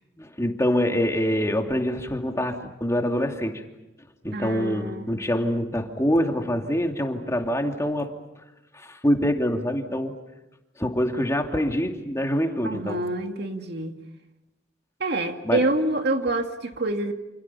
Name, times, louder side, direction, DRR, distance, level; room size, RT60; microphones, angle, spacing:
voice 1, 0.2-3.6 4.2-8.1 8.7-10.1 10.8-13.0 15.4-15.7, equal, 15° left, 3 dB, 2.6 m, -25 dB
voice 2, 4.3-5.1 12.6-13.9 15.0-17.1, right 2 dB, 65° right, 5 dB, 2.3 m, -26 dB
28.5 x 28.0 x 5.7 m, 0.97 s
head